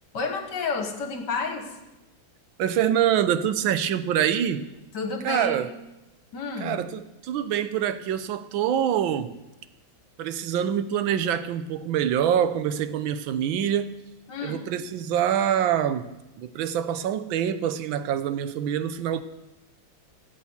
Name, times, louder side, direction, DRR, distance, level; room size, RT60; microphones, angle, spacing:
voice 1, 0.1-1.8 4.9-5.6 6.3-6.8 14.3-14.6, left 4 dB, 60° left, 2.1 m, -30 dB
voice 2, 2.6-4.7 5.2-5.7 6.6-9.4 10.2-14.0 14.4-16.1 16.4-19.2, right 9 dB, 80° right, 1.5 m, -25 dB
16.5 x 8.4 x 7.1 m
omnidirectional pair, 2.2 m